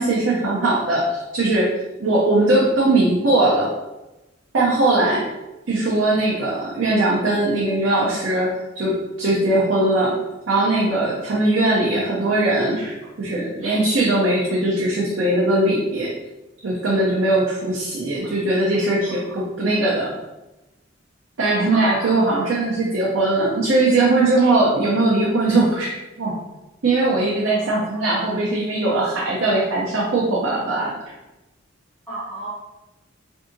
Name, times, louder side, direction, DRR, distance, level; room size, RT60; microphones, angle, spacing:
voice 1, 0.0-1.7 2.0-3.7 4.5-5.3 5.7-10.2 10.5-16.1 16.6-20.1 21.4-26.4 26.8-30.9, right 2 dB, 75° right, -5 dB, 0.6 m, -20 dB
voice 2, 21.7-22.5 22.8-23.1 32.1-32.5, right 2 dB, 5° left, -12 dB, 1.1 m, -32 dB
3.5 x 2.7 x 2.6 m, 1.0 s
head